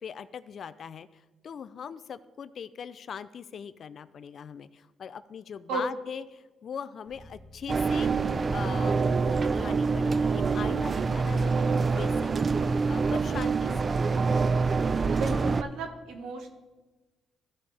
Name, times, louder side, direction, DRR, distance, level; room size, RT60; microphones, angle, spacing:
voice 1, 0.0-14.0, left 7 dB, 55° left, 14 dB, 0.4 m, -41 dB
sound 1, 7.1-9.2, left 2 dB, 10° right, 2.5 m, -54 dB
sound 2, 7.7-15.6, right 4 dB, 35° right, 0.3 m, -26 dB
voice 2, 15.1-16.5, right 3 dB, 85° right, 4 dB, 1.4 m, -34 dB
15.0 x 5.3 x 3.4 m, 1.2 s
cardioid pair, 90°, 0 cm